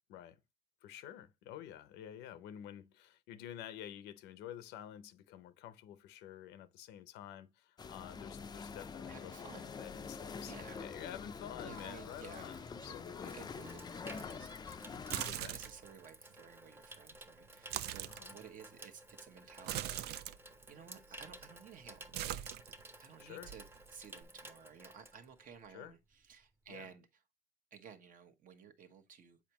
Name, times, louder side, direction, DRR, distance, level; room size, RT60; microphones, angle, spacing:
voice 1, 0.8-13.3 15.2-15.6 18.1-18.4 23.2-23.5 25.7-25.9 26.7-26.9, left 10 dB, 90° left, 0.7 m, -50 dB
sound 1, 7.8-15.3, left 5 dB, 25° left, 0.4 m, -46 dB
voice 2, 9.1-9.7 10.4-10.9 11.6-12.5 12.8-14.5 15.2-20.2 20.7-22.5 23.0-23.7 23.9-27.1 27.7-29.4, right 7 dB, 55° right, 1.0 m, -55 dB
Water tap faucet / Sink (filling or washing), 11.3-25.8 26.1-26.4, right 1 dB, 15° right, 0.8 m, -55 dB
sound 2, 15.0-15.9 17.5-18.2 19.6-20.4 21.2-21.6 21.8-23.1 23.4-24.2, right 12 dB, 75° right, 0.5 m, -41 dB
7.3 x 4.6 x 2.9 m
cardioid pair, 110°, 17 cm